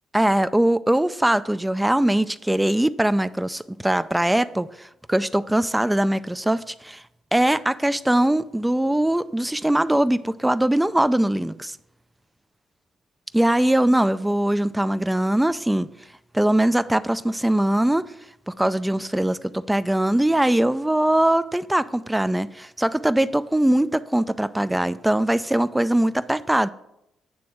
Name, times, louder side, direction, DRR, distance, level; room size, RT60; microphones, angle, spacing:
voice 1, 0.1-7.0 7.3-11.8 13.3-15.9 16.3-18.1 18.5-26.7, right 1 dB, 5° right, 0.3 m, -21 dB
8.7 x 3.5 x 6.1 m
cardioid pair, 90°, 0 cm